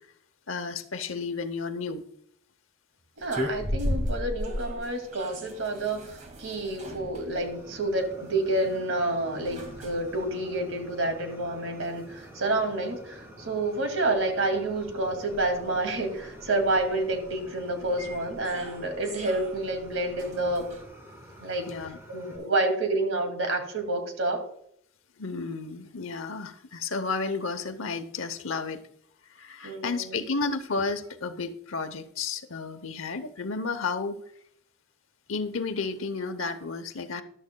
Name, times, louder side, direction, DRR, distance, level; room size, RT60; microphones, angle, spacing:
voice 1, 0.5-2.0 3.4-3.5 21.7-22.0 25.2-28.9 29.3-34.2 35.3-37.2, left 4 dB, 80° left, 10 dB, 0.9 m, -32 dB
sound 1, 3.2-20.8, equal, 40° right, 2.1 m, -39 dB
voice 2, 3.2-20.7 21.4-21.7 22.1-24.4 29.6-30.2, right 2 dB, 85° right, 5 dB, 2.4 m, -29 dB
Fire, 7.3-22.4, equal, 15° right, 4.9 m, -49 dB
14.0 x 12.0 x 2.3 m, 0.69 s
head